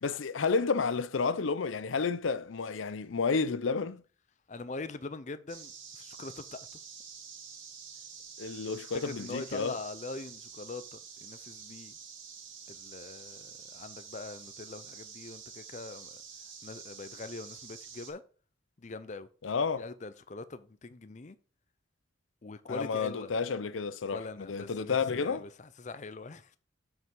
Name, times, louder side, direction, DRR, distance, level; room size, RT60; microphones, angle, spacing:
voice 1, 0.0-4.0 8.4-9.8 19.4-19.9 22.7-25.5, left 5 dB, 80° left, 0.6 m, -31 dB
voice 2, 4.5-6.6 9.0-12.0 12.7-16.2 16.6-18.2 18.8-19.3 19.8-21.4 22.4-23.3 24.1-26.6, left 3 dB, 35° left, 0.5 m, -43 dB
sound 1, 5.5-18.1, right 6 dB, 75° right, 2.9 m, -48 dB
7.9 x 5.5 x 4.7 m
head